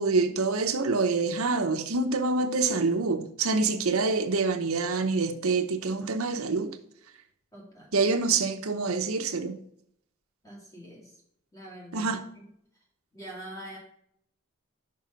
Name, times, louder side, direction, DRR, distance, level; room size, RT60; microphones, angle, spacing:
voice 1, 0.0-6.8 7.9-9.6 11.9-12.2, right 3 dB, 90° right, 0.8 m, -26 dB
voice 2, 7.5-8.0 10.4-11.1 11.5-12.1 13.1-13.8, right 1 dB, 15° left, 2.4 m, -44 dB
5.7 x 5.5 x 5.1 m
head